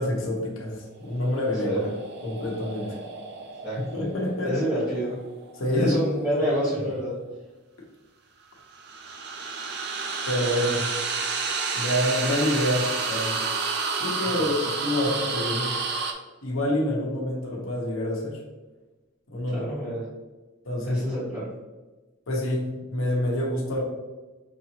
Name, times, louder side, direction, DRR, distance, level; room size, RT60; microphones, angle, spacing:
voice 1, 0.0-1.9 2.2-2.9 3.9-4.6 5.5-6.4 10.3-10.8 11.7-13.4 14.0-15.7 16.4-18.4 19.3-19.7 20.7-21.0 22.3-23.8, left 1 dB, 80° left, -2 dB, 1.0 m, -27 dB
sound 1, 1.0-6.1 8.6-16.1, right 4 dB, 50° right, 0.5 m, -31 dB
voice 2, 4.4-5.2 5.7-7.2 14.2-14.4 19.5-20.0 20.9-21.5, equal, 15° right, -13 dB, 1.2 m, -28 dB
5.4 x 2.9 x 2.9 m, 1.2 s
head